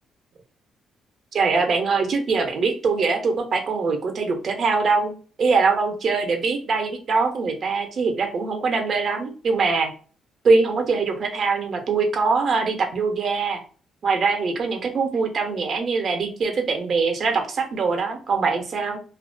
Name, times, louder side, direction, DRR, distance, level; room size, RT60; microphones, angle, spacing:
voice 1, 1.3-9.9 10.4-13.6 14.0-19.0, right 4 dB, 55° right, 5 dB, 0.6 m, -23 dB
2.4 x 2.1 x 2.5 m, 0.40 s
cardioid pair, 90°, 0 cm